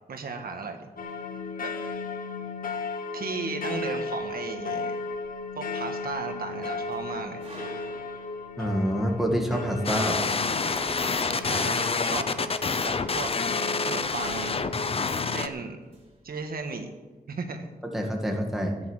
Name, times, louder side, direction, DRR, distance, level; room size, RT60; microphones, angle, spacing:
voice 1, 0.1-0.9 1.6-1.7 3.1-5.0 5.5-7.4 11.2-12.5 12.8-13.3 13.8-14.6 15.2-15.8 16.2-16.9 17.3-17.7, right 4 dB, 80° right, 5 dB, 1.5 m, -35 dB
sound 1, 1.0-15.5, left 3 dB, 65° left, 1.2 m, -35 dB
sound 2, 6.6-8.8 9.2-9.4 9.8-9.9 10.3-13.8 15.8-16.8, right 1 dB, 40° right, 4.5 m, -46 dB
voice 2, 8.6-10.3 17.9-18.7, equal, ahead, 1 dB, 1.9 m, -27 dB
sound 3, 9.8-15.5, left 4 dB, 40° left, 0.7 m, -27 dB
14.0 x 9.6 x 6.4 m, 1.2 s
wide cardioid pair, 145°, 15 cm